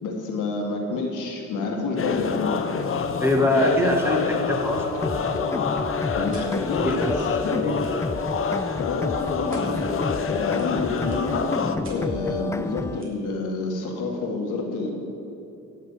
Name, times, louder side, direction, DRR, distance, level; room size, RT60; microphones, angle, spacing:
voice 1, 0.0-2.5 6.2-7.8 8.8-9.9 10.3-11.4 11.9-14.9, left 3 dB, 85° left, 0 dB, 2.1 m, -28 dB
sound 1, 2.0-11.8, left 5 dB, 45° left, 0.8 m, -27 dB
voice 2, 3.2-5.1 5.4-5.9 6.2-6.5 6.8-7.2, left 1 dB, 10° right, 1 dB, 1.9 m, -24 dB
sound 2, 5.0-13.0, left 2 dB, 10° left, 0.3 m, -30 dB
sound 3, 6.3-6.5 7.1-7.2 7.6-8.0 9.5-9.7 10.5-11.3 11.8-12.0 13.0-13.1, right 3 dB, 40° right, 3.0 m, -46 dB
16.0 x 6.6 x 5.8 m, 2.9 s
cardioid pair, 90°, 30 cm